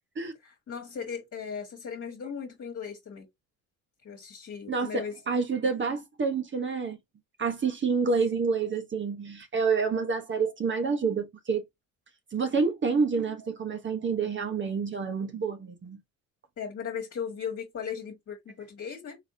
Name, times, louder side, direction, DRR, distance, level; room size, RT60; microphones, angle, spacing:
voice 1, 0.4-3.3 4.0-5.1 16.6-19.2, left 7 dB, 45° left, 1.6 m, -37 dB
voice 2, 4.7-7.0 7.4-11.6 12.3-16.0, right 5 dB, 35° right, 1.1 m, -28 dB
3.8 x 3.5 x 2.7 m
cardioid pair, 90°, 33 cm